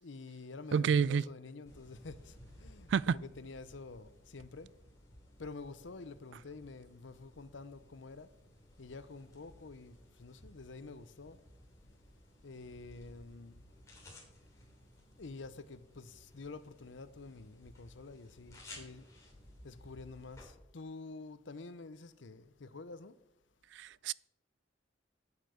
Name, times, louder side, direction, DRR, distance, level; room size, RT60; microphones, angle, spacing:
voice 1, 0.0-2.1 2.6-4.7 5.4-8.3 8.8-9.9 10.2-11.4 12.4-13.5 15.2-19.0 19.6-23.1, left 3 dB, 85° left, 0.7 m, -48 dB
voice 2, 0.7-1.3 2.9-3.2 23.8-24.1, right 6 dB, 70° right, 0.3 m, -29 dB
sound 1, 1.6-20.5, left 1 dB, 15° left, 3.1 m, -58 dB
8.9 x 8.1 x 6.4 m
head